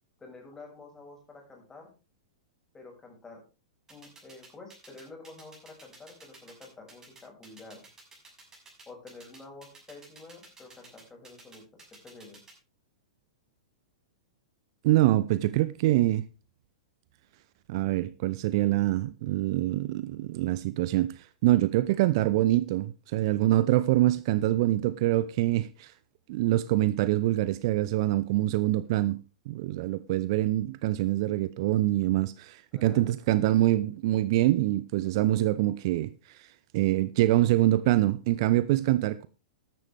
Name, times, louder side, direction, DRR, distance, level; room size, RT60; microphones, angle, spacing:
voice 1, 0.2-1.9 2.7-3.4 3.9-7.8 8.9-11.6 12.0-12.4 32.7-33.1, left 3 dB, 15° left, 6.3 m, -49 dB
sound 1, 3.9-12.5, right 3 dB, 15° right, 6.4 m, -52 dB
voice 2, 14.8-16.2 17.7-25.9 26.3-29.2 29.5-36.5 36.7-39.3, right 15 dB, 45° right, 0.6 m, -25 dB
14.0 x 11.5 x 3.5 m
figure-of-eight pair, 105°, 4 cm